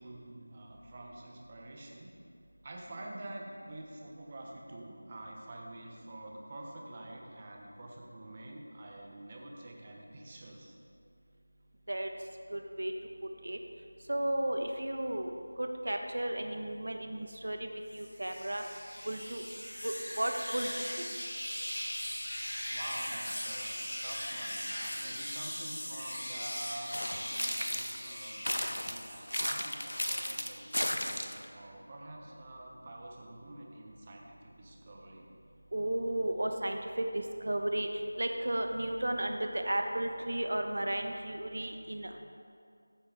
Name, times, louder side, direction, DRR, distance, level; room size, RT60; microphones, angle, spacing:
voice 1, 0.0-2.2 2.6-10.8 22.7-35.3, right 1 dB, 25° right, -1 dB, 1.1 m, -47 dB
voice 2, 12.5-12.9 13.4-13.6 14.1-15.3 15.6-18.6 19.0-19.4 19.8-20.7 21.0-21.1 35.7-37.9 38.2-42.2, right 1 dB, 65° right, 4 dB, 1.1 m, -34 dB
sound 1, 17.9-29.6 30.0-30.9, equal, 65° left, 2.5 m, -40 dB
sound 2, 26.9-28.1 28.4-31.4, equal, 90° left, 0.9 m, -34 dB
14.5 x 6.9 x 3.5 m, 2.4 s
figure-of-eight pair, 170°, 0 cm